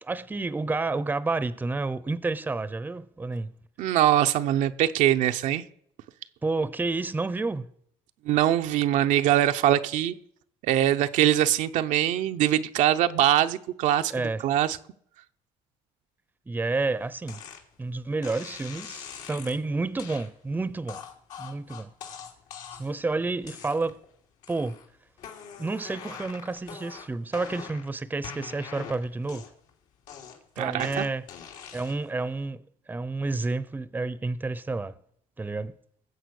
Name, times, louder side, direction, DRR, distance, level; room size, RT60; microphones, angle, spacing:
voice 1, 0.0-3.5 6.4-7.7 14.1-14.4 16.5-17.4 17.8-21.0 21.4-21.9 22.8-24.0 24.5-24.8 25.6-29.5 30.6-31.2 31.7-32.6 32.9-34.9 35.4-35.7, right 3 dB, 15° right, 0.8 m, -30 dB
voice 2, 3.8-5.6 8.2-10.1 10.6-14.8 30.6-31.1, right 12 dB, 70° right, 0.8 m, -23 dB
sound 1, 17.3-17.6 18.2-19.6 20.0-20.3 20.9-23.0 23.4-24.0 24.4-24.9 25.2-27.9 28.2-29.7 30.1-32.1, left 7 dB, 75° left, 3.0 m, -43 dB
20.0 x 7.8 x 6.5 m
cardioid pair, 110°, 13 cm